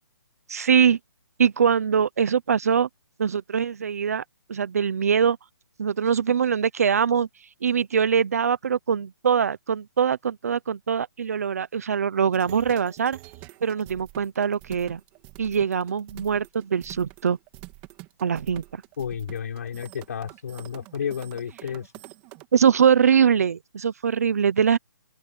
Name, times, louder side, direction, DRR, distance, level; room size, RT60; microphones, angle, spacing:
voice 1, 0.5-1.0 1.4-2.9 3.2-4.2 4.5-5.4 5.8-7.3 7.6-13.2 13.6-15.0 15.4-17.4 18.2-18.8 22.5-24.8, right 7 dB, 45° right, 0.8 m, -22 dB
sound 1, 12.3-22.5, right 20 dB, 15° right, 2.8 m, -46 dB
voice 2, 19.0-21.9, left 7 dB, 45° left, 4.5 m, -32 dB
open air
hypercardioid pair, 175°, 12 cm